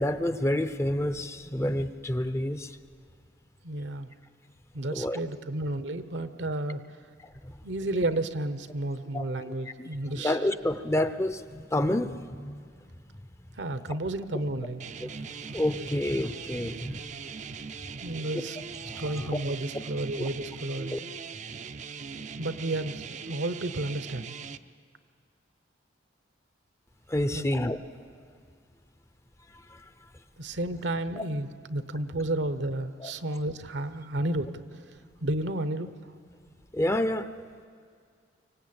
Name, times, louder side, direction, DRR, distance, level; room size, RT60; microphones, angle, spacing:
voice 1, 0.0-2.8 4.9-5.2 7.2-7.3 9.1-12.6 15.0-17.1 18.3-18.4 18.9-19.3 20.2-20.3 20.9-21.0 27.1-27.8 29.7-29.8 31.2-31.3 33.0-33.1 36.7-37.4, left 1 dB, 15° left, 11 dB, 0.6 m, -29 dB
voice 2, 3.6-4.1 4.7-6.8 7.6-10.4 13.6-14.8 18.0-18.6 19.0-21.0 22.4-24.3 27.3-27.5 30.4-34.8 35.2-35.9, right 1 dB, 70° right, 12 dB, 0.9 m, -32 dB
sound 1, 14.8-24.6, right 5 dB, 40° right, 0.5 m, -40 dB
24.5 x 17.5 x 8.8 m, 2.2 s
head